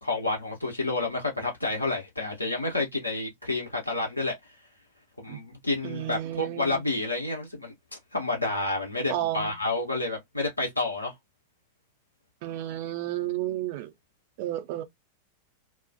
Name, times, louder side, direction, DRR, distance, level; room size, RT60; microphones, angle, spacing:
voice 1, 0.0-4.4 5.2-7.7 8.1-11.1, left 2 dB, 85° left, 0.8 m, -29 dB
voice 2, 5.8-6.8 9.1-9.5 12.4-13.9 14.4-14.8, right 13 dB, 50° right, 0.5 m, -32 dB
2.2 x 2.2 x 2.5 m
figure-of-eight pair, 90°, 0 cm